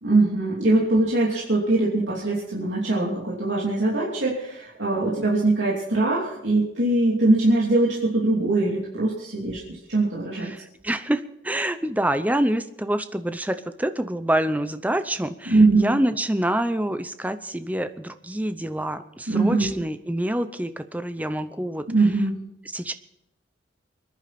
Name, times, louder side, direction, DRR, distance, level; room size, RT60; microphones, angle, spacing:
voice 1, 0.0-10.5 15.5-15.9 19.3-19.7 21.9-22.4, right 2 dB, 75° right, -5 dB, 3.0 m, -22 dB
voice 2, 10.4-21.8 22.7-22.9, right 1 dB, 10° right, 10 dB, 0.7 m, -26 dB
24.5 x 10.5 x 4.3 m, 0.85 s
head